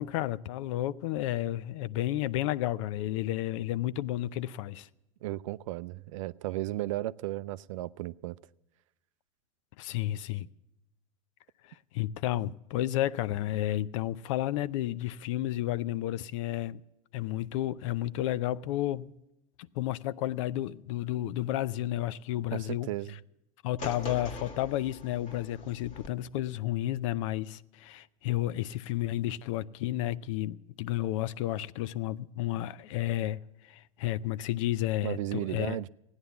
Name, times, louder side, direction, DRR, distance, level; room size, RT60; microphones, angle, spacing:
voice 1, 0.0-4.9 9.8-10.5 11.7-16.8 17.1-19.1 19.7-22.9 23.6-35.8, left 14 dB, 65° left, 0.5 m, -32 dB
voice 2, 5.2-8.4 22.5-23.2 35.0-35.9, right 15 dB, 70° right, 0.4 m, -35 dB
sound 1, 23.8-26.1, left 2 dB, 45° left, 1.7 m, -42 dB
16.0 x 9.7 x 6.9 m
hypercardioid pair, 90°, 17 cm